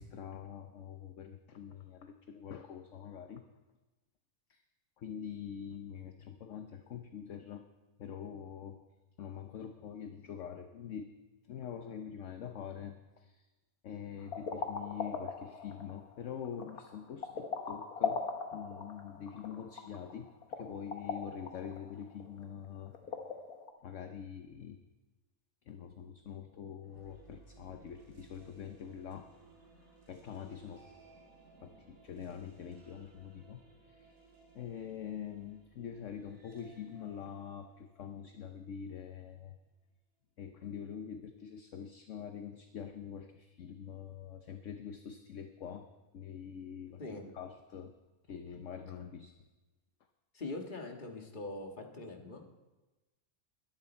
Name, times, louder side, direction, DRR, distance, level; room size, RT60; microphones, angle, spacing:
voice 1, 0.0-3.4 4.5-4.6 5.0-7.6 8.0-8.8 9.2-11.1 11.5-13.5 13.8-20.3 20.6-22.9 23.8-24.8 25.7-29.3 30.1-30.9 31.6-33.6 33.9-34.1 34.5-39.6 40.4-47.0 47.3-47.9 48.3-49.3, left 8 dB, 60° left, 6 dB, 1.1 m, -45 dB
sound 1, 14.2-23.7, left 5 dB, 85° left, 1.8 m, -40 dB
sound 2, 26.8-39.0, right 3 dB, 85° right, 4.1 m, -61 dB
voice 2, 50.3-52.5, left 2 dB, 35° left, 2 dB, 1.8 m, -42 dB
21.5 x 11.0 x 4.4 m, 1.2 s
omnidirectional pair, 1.5 m